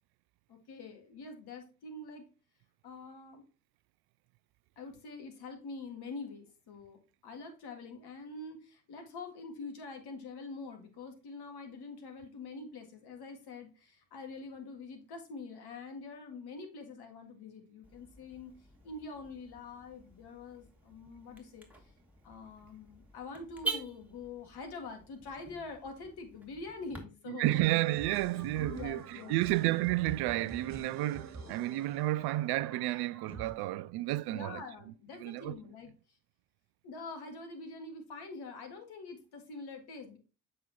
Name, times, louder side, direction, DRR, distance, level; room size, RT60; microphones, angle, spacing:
voice 1, 0.5-2.3 2.8-3.4 4.8-18.5 18.8-21.7 22.2-27.5 28.6-29.4 30.8-30.9 34.3-35.9 36.8-40.2, left 3 dB, 65° left, 1.9 m, -45 dB
Car / Alarm, 17.8-27.0, right 3 dB, 5° right, 2.3 m, -46 dB
voice 2, 27.3-34.6 35.2-35.6, right 17 dB, 65° right, 0.5 m, -31 dB
sound 1, 27.8-33.5, right 3 dB, 40° right, 1.7 m, -47 dB
7.5 x 5.3 x 2.9 m
hypercardioid pair, 40°, 42 cm